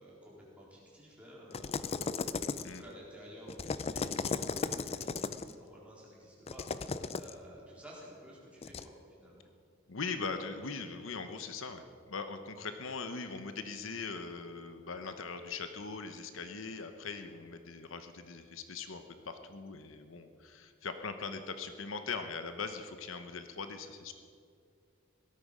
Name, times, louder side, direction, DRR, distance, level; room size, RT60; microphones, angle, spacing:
voice 1, 0.0-9.5, equal, 5° right, -6 dB, 4.0 m, -53 dB
sound 1, 1.5-2.9 3.5-5.5 6.5-7.3 8.6-8.8, left 4 dB, 30° left, 0.4 m, -36 dB
voice 2, 9.9-24.1, left 4 dB, 75° left, 8 dB, 0.9 m, -41 dB
17.5 x 13.0 x 5.0 m, 2.2 s
head